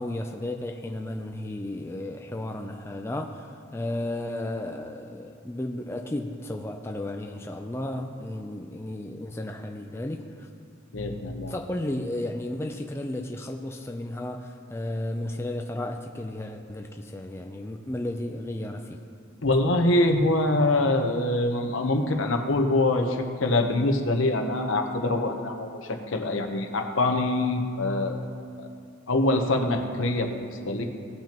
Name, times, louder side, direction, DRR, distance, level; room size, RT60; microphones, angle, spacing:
voice 1, 0.0-10.5 11.5-19.0, left 1 dB, 10° left, 3 dB, 0.4 m, -33 dB
voice 2, 10.9-11.5 19.4-28.2 28.6-28.7 29.1-30.8, left 2 dB, 70° left, 5 dB, 0.9 m, -24 dB
17.5 x 5.9 x 2.9 m, 2.3 s
head